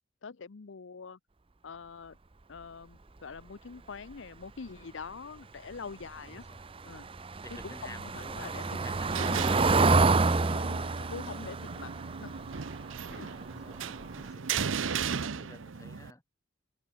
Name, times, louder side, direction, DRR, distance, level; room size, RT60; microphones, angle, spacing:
voice 1, 0.2-1.2 1.6-2.2 2.5-6.4 6.8-7.1 7.6-8.9 9.2-9.6 10.5-11.9 12.2-12.3 13.1-13.3, left 5 dB, 75° left, 0.7 m, -44 dB
voice 2, 6.3-6.7 7.4-9.1 10.4-10.9 13.2-16.2, left 1 dB, 15° left, 3.6 m, -52 dB
Car passing by / Engine, 6.5-13.4 13.8-14.0 14.3-14.4, right 3 dB, 30° right, 0.6 m, -28 dB
sound 1, 8.8-16.1, right 7 dB, 90° right, 0.7 m, -37 dB
head